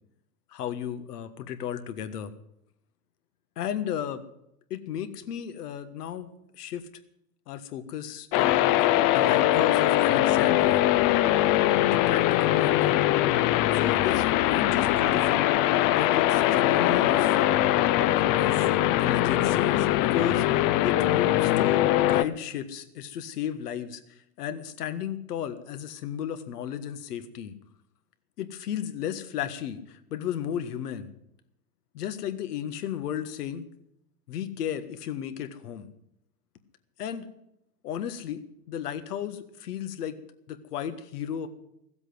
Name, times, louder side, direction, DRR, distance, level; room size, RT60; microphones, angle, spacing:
voice 1, 0.5-2.3 3.6-4.2 4.7-6.9 7.5-8.7 9.1-10.8 11.8-13.0 13.7-15.5 15.9-17.5 18.1-18.7 18.9-27.5 28.4-31.1 31.9-33.7 34.3-35.9 37.0-37.3 37.8-40.2 40.5-41.5, left 9 dB, 75° left, 9 dB, 1.6 m, -34 dB
sound 1, 8.3-22.2, left 14 dB, 45° left, 0.8 m, -22 dB
15.5 x 8.0 x 9.5 m, 0.81 s
hypercardioid pair, 100°, 46 cm